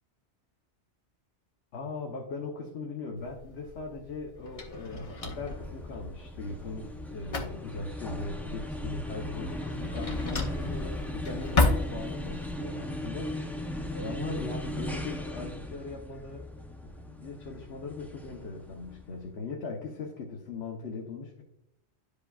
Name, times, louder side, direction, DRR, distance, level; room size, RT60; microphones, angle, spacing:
voice 1, 1.7-16.5 16.8-21.4, left 3 dB, 70° left, 0 dB, 1.1 m, -39 dB
Drawer open or close, 3.2-12.5, left 2 dB, 35° left, 0.9 m, -33 dB
sound 1, 4.8-19.3, left 1 dB, ahead, 0.4 m, -38 dB
11.0 x 5.1 x 2.3 m, 0.81 s
omnidirectional pair, 1.2 m